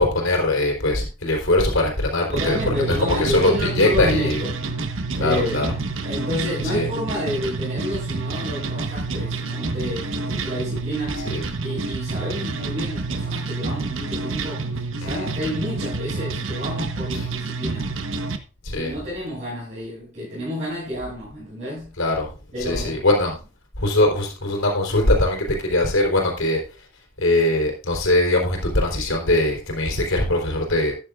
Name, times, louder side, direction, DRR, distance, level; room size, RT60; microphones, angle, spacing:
voice 1, 0.0-4.4 5.2-5.7 6.6-6.9 11.2-11.4 15.0-15.3 17.1-17.3 18.6-18.9 22.0-22.3 22.6-23.4 23.8-26.6 27.2-30.9, left 1 dB, 80° left, 3.9 m, -21 dB
voice 2, 2.3-4.6 5.2-5.7 6.0-11.3 11.6-18.0 18.7-21.9 22.5-23.1, equal, 35° right, 6.4 m, -30 dB
sound 1, 2.4-18.4, right 3 dB, 70° right, 1.2 m, -28 dB
13.5 x 10.0 x 2.5 m
head